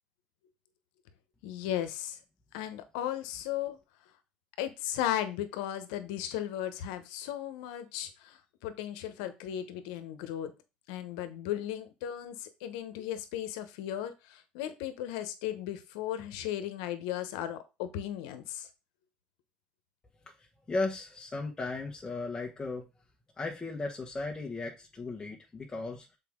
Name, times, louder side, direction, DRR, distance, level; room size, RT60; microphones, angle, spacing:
voice 1, 1.4-2.2 2.5-3.8 4.6-10.5 10.9-18.7, left 11 dB, 85° left, 10 dB, 1.0 m, -36 dB
voice 2, 20.4-22.9 23.4-26.1, left 3 dB, 20° left, -1 dB, 1.3 m, -36 dB
6.8 x 4.6 x 3.7 m, 0.27 s
supercardioid pair, 90°, 4 cm